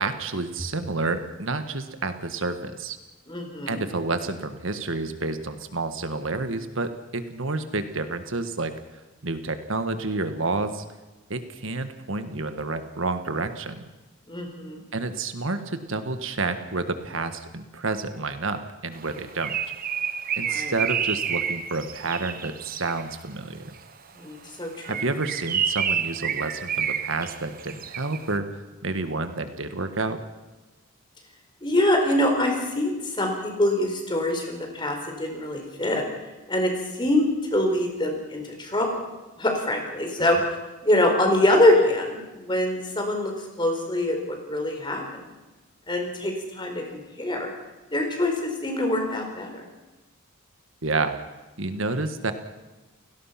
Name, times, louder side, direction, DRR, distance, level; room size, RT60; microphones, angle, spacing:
voice 1, 0.0-3.0 3.7-8.7 9.2-10.8 11.3-13.8 14.9-19.5 20.4-23.7 24.8-30.2 40.2-40.4 50.8-51.1 51.6-52.3, right 3 dB, 65° right, 9 dB, 1.5 m, -29 dB
voice 2, 3.3-3.8 14.3-14.8 20.4-20.7 24.2-25.0 31.6-36.0 36.5-39.1 39.4-40.6 40.8-45.2 45.9-47.5 47.9-49.6, left 1 dB, 20° left, 3 dB, 4.4 m, -24 dB
Bird, 19.0-23.1 24.7-28.3, right 7 dB, 40° right, 1.1 m, -29 dB
30.0 x 18.0 x 5.9 m, 1.1 s
head